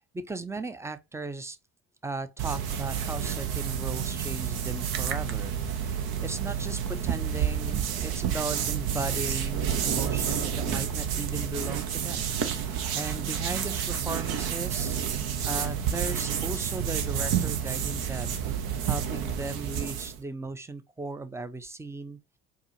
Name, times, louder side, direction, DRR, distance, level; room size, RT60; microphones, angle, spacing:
voice 1, 0.1-1.6 2.0-12.3 12.6-14.9 15.4-18.4 18.8-22.2, right 3 dB, 5° right, 0.5 m, -37 dB
sound 1, 2.4-20.2, right 8 dB, 60° right, 0.9 m, -30 dB
4.7 x 2.4 x 2.9 m
hypercardioid pair, 60°, 42 cm